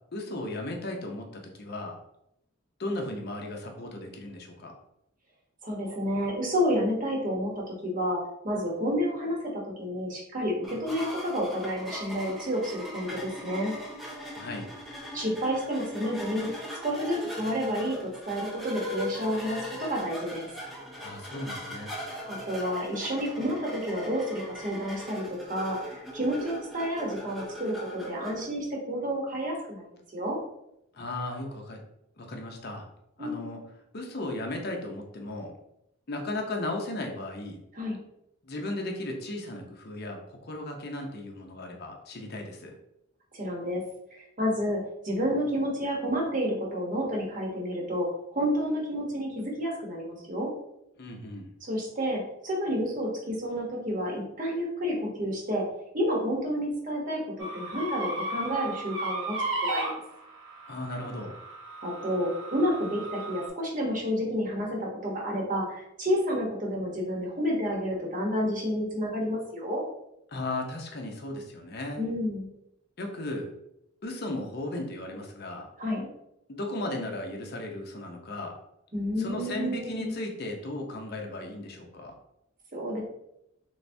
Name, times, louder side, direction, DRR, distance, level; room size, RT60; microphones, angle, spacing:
voice 1, 0.1-2.0 2.8-4.7 14.3-14.7 21.0-21.9 30.9-31.8 32.2-32.8 33.2-33.6 33.9-35.5 36.1-37.6 38.4-42.7 51.0-51.5 60.7-61.3 70.3-72.0 73.0-73.5 74.0-75.7 76.5-78.6 79.2-82.1, left 1 dB, 50° left, 2 dB, 0.6 m, -36 dB
voice 2, 5.6-8.2 8.4-13.7 15.1-16.5 16.8-20.5 22.3-29.8 30.1-30.4 33.2-33.4 37.7-38.0 43.3-43.8 44.1-48.1 48.3-50.5 51.6-55.6 55.9-59.4 59.6-59.9 61.8-69.8 72.0-72.5 75.8-76.1 78.9-80.1 82.7-83.0, equal, 40° right, -1 dB, 0.9 m, -30 dB
sound 1, 10.6-28.4, equal, ahead, 0.5 m, -40 dB
sound 2, 57.4-63.5, right 2 dB, 75° right, 0.9 m, -35 dB
3.4 x 3.3 x 2.6 m, 0.80 s
head